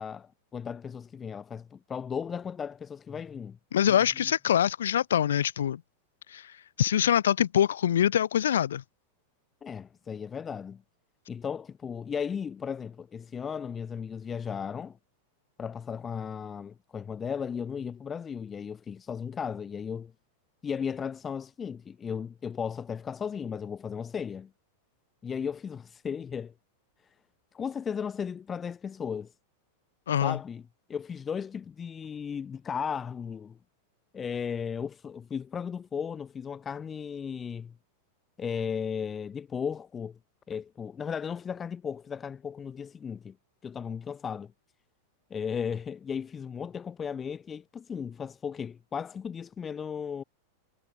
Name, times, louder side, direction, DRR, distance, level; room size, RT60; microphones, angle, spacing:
voice 1, 0.0-3.6 3.9-4.3 9.6-10.8 11.3-15.0 15.6-20.1 20.6-24.5 25.2-26.5 27.5-29.3 30.2-30.6 30.9-33.6 34.1-37.7 38.4-40.2 40.5-43.3 43.6-44.5 45.3-50.2, left 7 dB, 20° left, 1.4 m, -35 dB
voice 2, 3.7-5.8 6.3-6.5 6.8-8.8 30.1-30.4, left 10 dB, 65° left, 0.4 m, -24 dB
figure-of-eight pair, 90°, 0 cm